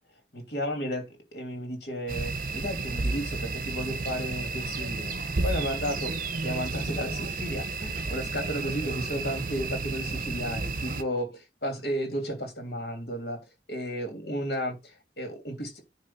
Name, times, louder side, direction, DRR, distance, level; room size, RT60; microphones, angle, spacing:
voice 1, 0.3-5.1 5.4-6.1 6.4-13.4 13.7-15.8, equal, 65° left, 2.9 m, -33 dB
sound 1, 2.1-11.0, right 3 dB, 50° right, 0.8 m, -32 dB
9.8 x 3.3 x 6.0 m
head